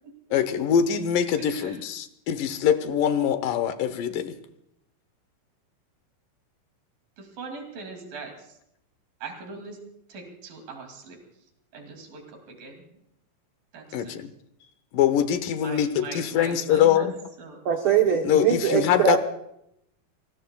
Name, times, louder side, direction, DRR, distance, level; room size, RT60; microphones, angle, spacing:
voice 1, 0.3-4.3 13.9-14.3 14.9-17.1 18.3-19.2, left 9 dB, 80° left, 2.7 m, -23 dB
voice 2, 1.4-1.9 7.2-8.6 9.2-9.8 10.1-11.2 11.7-13.0 13.7-14.2 15.6-17.1 17.4-17.7, right 4 dB, 90° right, 4.5 m, -41 dB
voice 3, 17.6-19.2, right 8 dB, 60° right, 1.4 m, -22 dB
27.0 x 20.5 x 2.4 m
omnidirectional pair, 3.9 m